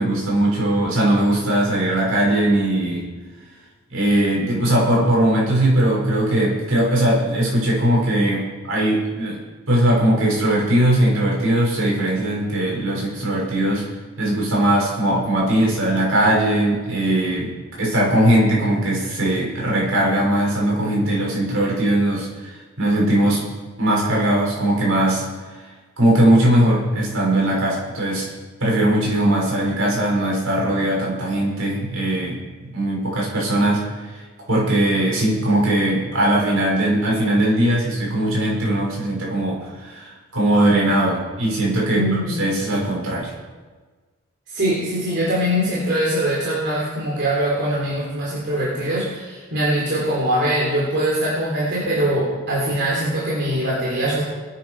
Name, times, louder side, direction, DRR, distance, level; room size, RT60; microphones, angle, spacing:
voice 1, 0.0-3.1 3.9-9.4 9.7-13.9 14.2-17.5 17.8-23.5 23.8-25.2 26.0-28.3 28.6-32.4 32.7-34.2 34.5-43.3, right 1 dB, 70° right, -4 dB, 6.3 m, -19 dB
voice 2, 41.9-42.4 44.5-54.2, right 1 dB, 50° right, -6 dB, 3.9 m, -22 dB
21.0 x 11.5 x 4.9 m, 1.4 s
head